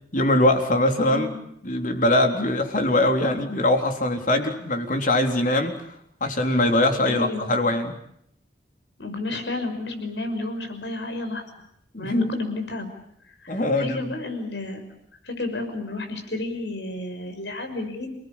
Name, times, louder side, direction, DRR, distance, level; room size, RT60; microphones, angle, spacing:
voice 1, 0.1-1.3 1.6-5.7 6.2-8.0 11.9-12.3 13.5-14.0, left 1 dB, 50° left, 5 dB, 3.7 m, -22 dB
voice 2, 7.1-7.5 9.0-11.4 12.0-12.9 13.4-14.8 15.2-18.1, left 2 dB, 80° left, 6 dB, 6.0 m, -31 dB
29.0 x 19.5 x 8.7 m, 0.73 s
head